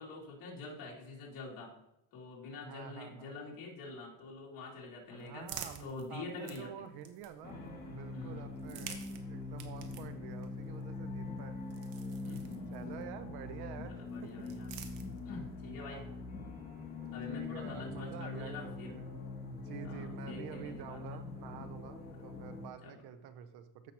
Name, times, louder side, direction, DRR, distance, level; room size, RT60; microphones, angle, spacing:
voice 1, 0.0-1.7 2.1-5.5 5.8-6.7 8.1-8.5 12.2-12.9 13.8-14.8 15.2-16.1 17.1-18.9 19.8-21.2 22.1-22.2 22.8-23.1, left 3 dB, 50° left, -3 dB, 2.7 m, -46 dB
voice 2, 2.6-3.3 5.1-11.6 12.7-14.3 15.8-16.1 17.3-19.2 19.4-23.9, right 9 dB, 60° right, 11 dB, 0.7 m, -48 dB
sound 1, 4.6-7.7 8.5-13.1 14.1-15.5, right 8 dB, 85° right, 1.2 m, -51 dB
sound 2, 7.4-22.7, left 3 dB, 20° left, 2.1 m, -43 dB
14.5 x 5.8 x 2.9 m, 0.86 s
cardioid pair, 150°, 44 cm